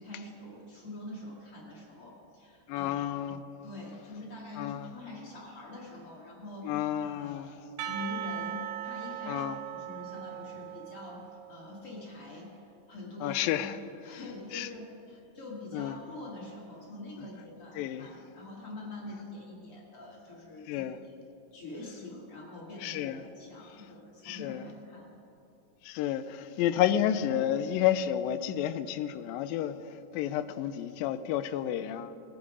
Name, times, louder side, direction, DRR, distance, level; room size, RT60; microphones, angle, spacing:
voice 1, 0.0-3.1 3.6-6.7 7.0-7.5 7.8-9.5 9.7-12.6 12.9-13.6 14.0-20.8 21.5-25.1, left 2 dB, 50° left, 2.2 m, -44 dB
voice 2, 2.7-3.4 4.6-4.9 6.6-7.5 9.3-9.6 13.2-13.8 14.5-14.7 15.7-16.0 17.8-18.1 20.7-21.0 22.8-23.2 24.3-24.7 25.8-32.2, left 11 dB, 90° left, 2.3 m, -31 dB
Percussion, 7.8-11.7, right 12 dB, 80° right, 1.7 m, -39 dB
19.0 x 7.9 x 4.8 m
omnidirectional pair, 4.0 m